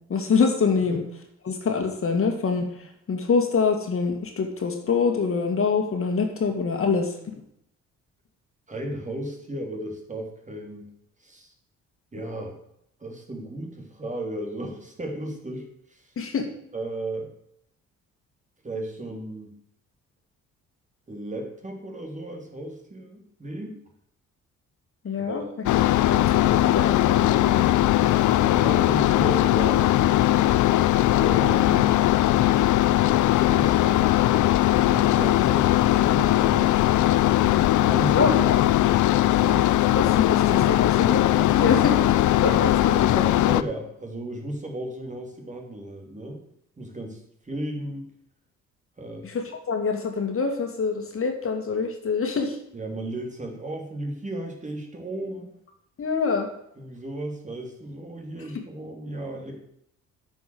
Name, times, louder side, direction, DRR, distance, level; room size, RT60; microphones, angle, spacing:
voice 1, 0.1-1.0 1.4-7.4 16.2-16.5 25.0-25.4 26.1-27.7 38.1-38.6 39.9-43.3 49.2-52.6 56.0-56.5 58.5-58.6, left 5 dB, 45° left, 3 dB, 2.2 m, -25 dB
voice 2, 8.7-10.9 11.2-11.5 12.1-12.6 13.0-16.1 16.7-17.3 18.6-19.6 21.1-23.8 25.2-25.5 25.9-26.0 28.3-30.0 31.2-32.0 33.3-36.8 37.4-38.7 39.4-39.7 43.4-46.4 46.8-48.1 49.0-49.3 52.7-55.5 56.8-59.6, right 1 dB, 25° right, 2 dB, 3.2 m, -35 dB
sound 1, 25.7-43.6, left 14 dB, 75° left, 0.6 m, -20 dB
9.3 x 6.4 x 7.8 m, 0.73 s
cardioid pair, 90°, 30 cm